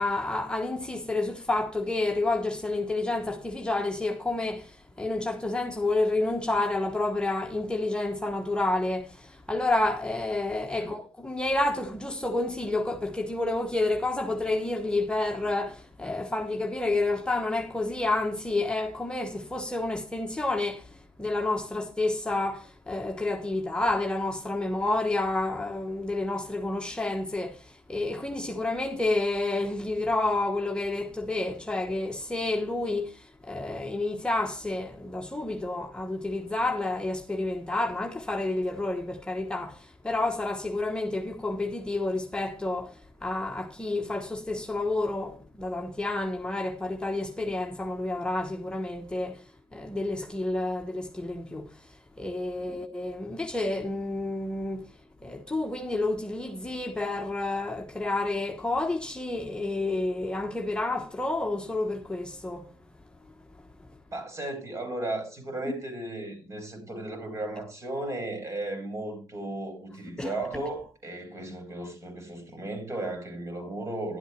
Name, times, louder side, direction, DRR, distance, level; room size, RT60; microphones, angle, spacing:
voice 1, 0.0-49.4 49.7-62.7 63.8-63.9 70.2-70.3, left 2 dB, 10° left, 1.2 m, -29 dB
voice 2, 64.1-74.2, right 2 dB, 35° right, 4.4 m, -35 dB
11.5 x 7.9 x 4.4 m
cardioid pair, 80°, 9 cm